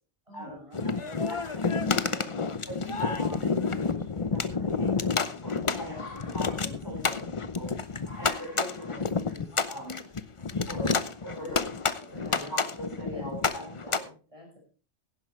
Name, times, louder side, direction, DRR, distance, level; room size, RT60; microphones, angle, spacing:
voice 1, 0.3-1.1 2.8-3.1 6.8-7.3 11.4-11.6 12.0-13.3 13.5-14.6, left 1 dB, 25° right, -1 dB, 6.3 m, -48 dB
sound 1, 0.7-14.0, left 4 dB, 30° left, 0.7 m, -29 dB
voice 2, 0.8-2.3 2.7-5.1 5.4-7.1 7.6-7.8 8.2-10.0 10.7-11.6 12.1-14.0, equal, 15° left, -2 dB, 6.6 m, -41 dB
sound 2, 2.6-2.7 3.2-11.2, left 3 dB, 85° left, 2.5 m, -52 dB
16.5 x 11.0 x 3.2 m, 0.37 s
omnidirectional pair, 1.2 m